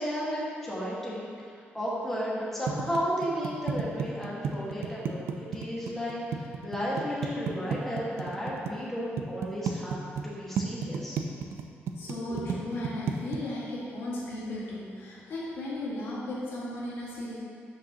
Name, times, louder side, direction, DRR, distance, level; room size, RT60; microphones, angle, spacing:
voice 1, 0.0-11.2, equal, 5° left, -7 dB, 1.6 m, -33 dB
sound 1, 2.7-8.7 9.2-10.3 10.6-13.4, right 7 dB, 70° right, 0.5 m, -32 dB
voice 2, 12.0-17.3, left 1 dB, 65° left, -6 dB, 1.7 m, -35 dB
12.0 x 5.2 x 2.9 m, 2.2 s
cardioid pair, 165°, 4 cm